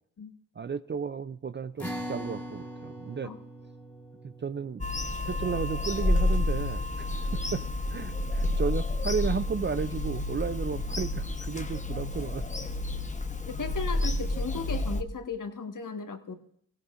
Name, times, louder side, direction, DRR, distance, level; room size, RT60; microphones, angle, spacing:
voice 1, 0.6-3.3 4.2-4.8 5.2-7.6 7.9-12.5, right 6 dB, 30° right, 14 dB, 0.5 m, -33 dB
sound 1, 1.8-8.4, equal, 5° left, 2.8 m, -43 dB
Bird vocalization bird call bird song / Telephone, 4.8-15.0, left 2 dB, 20° left, 1.1 m, -30 dB
voice 2, 13.5-16.3, left 5 dB, 55° left, 6 dB, 1.6 m, -36 dB
22.5 x 16.0 x 2.6 m, 0.66 s
supercardioid pair, 40°, 38 cm